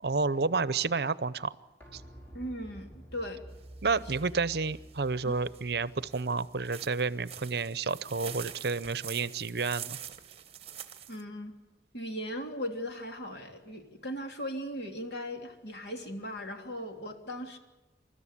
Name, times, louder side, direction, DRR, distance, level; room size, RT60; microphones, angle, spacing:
voice 1, 0.0-1.5 1.9-2.0 3.8-10.0, right 4 dB, 60° right, 17 dB, 0.7 m, -30 dB
sound 1, 1.8-7.4 7.7-7.8, right 1 dB, 10° left, 5.3 m, -50 dB
voice 2, 2.3-3.4 5.2-5.3 11.1-11.5 11.9-17.6, equal, 65° left, 4 dB, 3.3 m, -38 dB
sound 2, 3.5-11.2, right 10 dB, 35° right, 1.3 m, -46 dB
28.5 x 14.0 x 10.0 m, 1.2 s
head